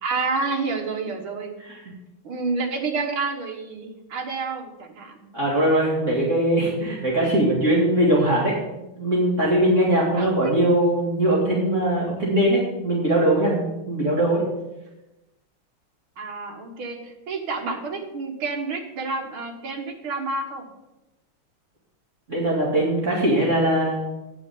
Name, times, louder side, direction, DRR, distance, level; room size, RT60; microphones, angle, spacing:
voice 1, 0.0-1.5 2.2-5.3 10.2-10.3 16.2-20.7, right 4 dB, 75° right, 3 dB, 2.2 m, -29 dB
voice 2, 5.3-8.6 9.0-14.4 22.3-24.0, right 1 dB, 35° right, -6 dB, 2.5 m, -21 dB
9.5 x 6.1 x 6.9 m, 0.98 s
omnidirectional pair, 2.3 m